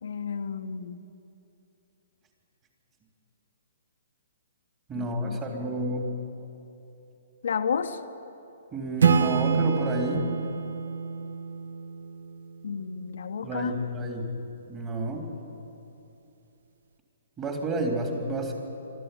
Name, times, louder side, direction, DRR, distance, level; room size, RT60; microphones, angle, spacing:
voice 1, 0.0-1.0 4.9-5.8 7.4-8.0 12.6-13.9, left 6 dB, 75° left, 5 dB, 1.3 m, -32 dB
voice 2, 4.9-6.1 8.7-10.3 13.4-14.3 14.7-15.2 17.4-18.5, right 1 dB, 20° right, 1 dB, 3.5 m, -30 dB
Acoustic guitar / Strum, 9.0-12.6, right 6 dB, 75° right, 1.0 m, -26 dB
24.0 x 13.5 x 10.0 m, 2.8 s
hypercardioid pair, 155°, 0 cm